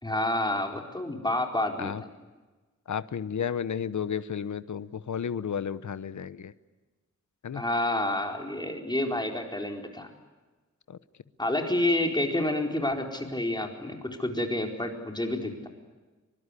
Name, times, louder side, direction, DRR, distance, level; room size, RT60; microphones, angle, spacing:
voice 1, 0.0-1.9 7.5-10.1 11.4-15.7, left 1 dB, 15° left, 3 dB, 4.4 m, -29 dB
voice 2, 2.9-6.5 7.4-7.6 10.9-11.0, left 7 dB, 75° left, 14 dB, 1.0 m, -32 dB
24.5 x 24.0 x 10.0 m, 1.2 s
wide cardioid pair, 125°, 30 cm